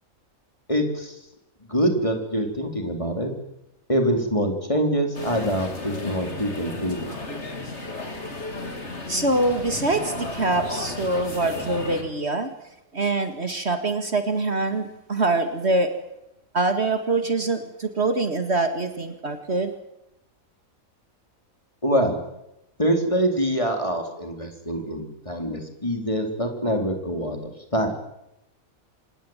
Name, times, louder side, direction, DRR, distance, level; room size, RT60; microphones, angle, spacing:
voice 1, 0.7-1.2 1.7-3.3 3.9-7.1 21.8-22.2 22.8-27.9, equal, 20° left, 4 dB, 4.1 m, -25 dB
sound 1, 5.1-12.0, left 3 dB, 55° left, 3.6 m, -34 dB
voice 2, 9.1-12.5 12.9-15.9 16.5-19.7, right 2 dB, 50° right, 8 dB, 2.3 m, -24 dB
26.5 x 19.5 x 9.1 m, 0.88 s
omnidirectional pair, 1.4 m